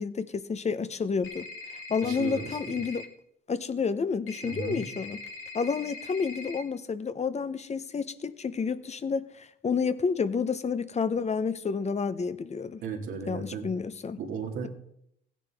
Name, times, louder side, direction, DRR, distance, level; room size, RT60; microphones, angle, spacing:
voice 1, 0.0-1.5 1.9-3.0 3.5-5.2 5.5-12.8 13.3-14.2, left 5 dB, 35° left, 0.8 m, -30 dB
sound 1, 1.2-3.0 4.3-6.6, left 3 dB, 85° left, 1.3 m, -42 dB
voice 2, 2.0-2.7 4.4-4.9 12.8-13.7 14.2-14.7, right 5 dB, 85° right, 2.2 m, -35 dB
16.0 x 10.0 x 3.5 m
cardioid pair, 90°, 20 cm